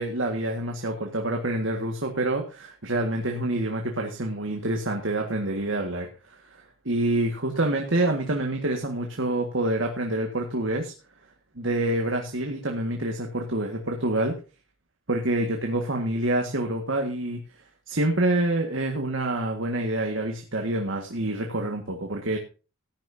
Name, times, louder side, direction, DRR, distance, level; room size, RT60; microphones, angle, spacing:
voice 1, 0.0-10.9 11.5-14.3 15.1-17.4 17.9-22.4, right 1 dB, 65° right, 2 dB, 1.8 m, -27 dB
18.0 x 10.5 x 2.7 m, 0.33 s
head